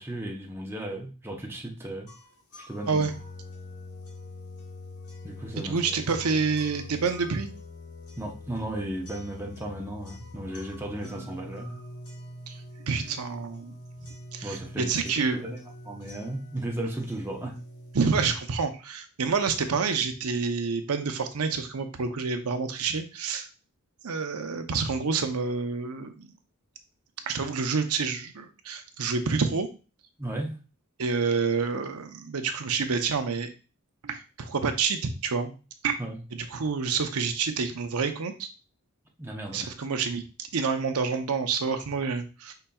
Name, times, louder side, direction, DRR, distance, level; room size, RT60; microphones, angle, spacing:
voice 1, 0.0-2.1 2.6-3.0 5.2-5.8 8.2-11.8 14.4-15.6 15.8-17.6 30.2-30.6 36.0-36.2 39.2-39.7, right 1 dB, 10° right, 0 dB, 0.8 m, -35 dB
sound 1, 2.1-18.1, left 1 dB, 80° left, 1.4 m, -44 dB
voice 2, 5.6-7.5 12.5-12.6 12.8-13.7 14.3-15.4 17.9-23.5 24.0-26.3 27.3-29.7 31.0-33.5 34.0-35.5 35.8-36.0 36.3-38.5 39.5-42.5, right 5 dB, 75° right, 7 dB, 0.7 m, -28 dB
5.6 x 3.9 x 2.3 m, 0.33 s
head